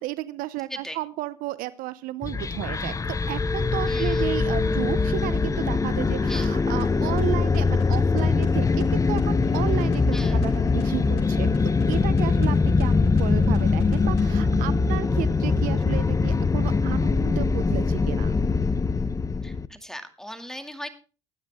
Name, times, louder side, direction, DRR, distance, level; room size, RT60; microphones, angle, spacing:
voice 1, 0.0-11.5 11.9-18.3, right 16 dB, 75° right, 17 dB, 0.7 m, -33 dB
sound 1, 2.2-19.7, left 4 dB, 20° left, 0.8 m, -22 dB
voice 2, 3.9-4.3 6.3-6.5 10.1-10.4 19.4-20.9, equal, 5° left, 8 dB, 2.3 m, -38 dB
sound 2, 6.4-14.4, left 4 dB, 85° left, 3.0 m, -50 dB
19.5 x 9.5 x 3.6 m, 0.36 s
supercardioid pair, 75°, 15 cm